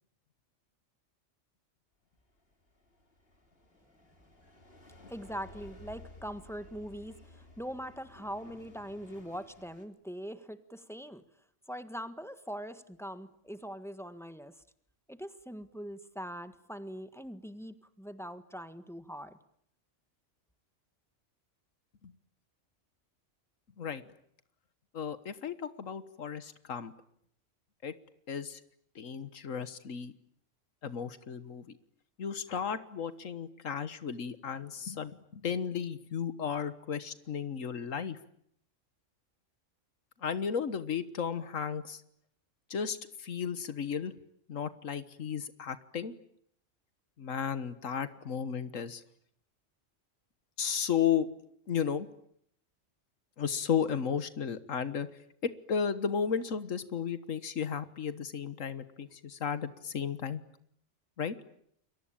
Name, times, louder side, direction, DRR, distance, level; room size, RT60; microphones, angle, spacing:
sound 1, 2.3-9.8, left 2 dB, 50° left, 3.6 m, -55 dB
voice 1, 5.1-11.2 11.7-14.5 15.1-19.4, equal, ahead, 10 dB, 1.5 m, -42 dB
voice 2, 24.9-26.9 27.8-27.9 28.3-28.6 28.9-30.1 30.8-31.6 32.2-38.2 40.2-42.0 42.7-44.1 44.5-46.1 47.2-49.0 50.6-51.3 51.7-52.1 53.4-55.1 55.4-60.4 61.2-61.4, left 7 dB, 90° left, 13 dB, 1.7 m, -34 dB
29.0 x 23.0 x 8.8 m, 0.70 s
omnidirectional pair, 1.3 m